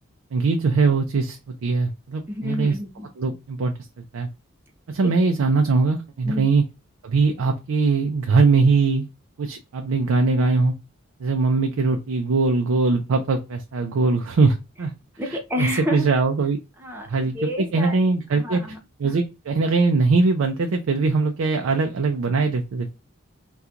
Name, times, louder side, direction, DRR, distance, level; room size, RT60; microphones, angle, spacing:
voice 1, 0.3-2.7 3.2-3.7 4.1-4.3 4.9-6.6 7.0-9.1 9.4-10.7 11.2-14.9 15.6-16.6 17.1-18.6 19.0-22.9, right 4 dB, 85° right, 0.4 m, -21 dB
voice 2, 2.3-3.1 5.0-5.1 6.3-6.5 15.2-16.1 16.8-18.0 18.3-18.8 19.0-19.1, left 1 dB, 10° right, 0.5 m, -29 dB
2.8 x 2.3 x 3.6 m
head